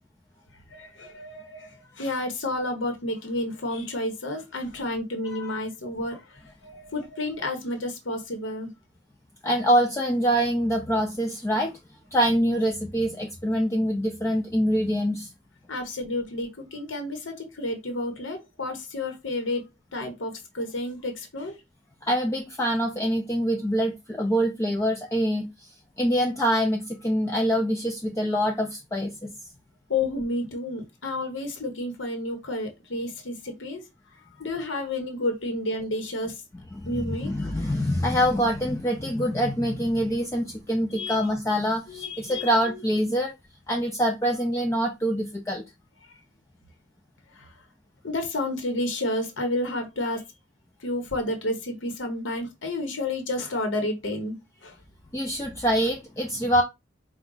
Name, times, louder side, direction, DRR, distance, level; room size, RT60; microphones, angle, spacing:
voice 1, 0.7-8.7 15.7-19.6 19.9-21.6 29.9-33.8 34.1-36.4 36.9-37.3 40.9-41.2 41.9-42.8 47.3-47.5 48.0-50.2 50.8-54.8, left 2 dB, 85° left, 1.0 m, -31 dB
voice 2, 5.3-5.6 9.4-11.8 12.1-15.3 22.0-25.7 26.0-29.3 36.7-43.3 43.7-45.6 55.1-56.6, equal, 15° left, 0.4 m, -25 dB
4.8 x 2.3 x 3.8 m
head